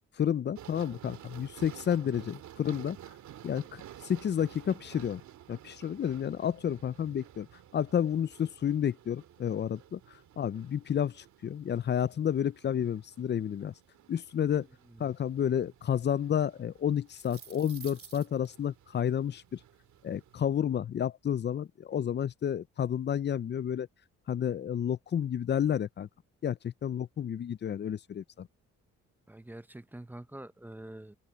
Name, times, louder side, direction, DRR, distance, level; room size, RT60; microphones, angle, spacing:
voice 1, 0.2-3.0 3.4-5.2 5.5-7.5 7.7-10.0 10.4-13.7 14.1-14.7 15.0-19.6 20.0-23.9 24.3-26.1 26.4-28.5, left 9 dB, 35° left, 0.5 m, -31 dB
sound 1, 0.6-20.5, right 11 dB, 70° right, 2.2 m, -53 dB
sound 2, 17.0-18.5, right 7 dB, 45° right, 3.3 m, -49 dB
voice 2, 29.3-31.2, right 1 dB, 5° right, 0.6 m, -46 dB
cardioid pair, 90°, 30 cm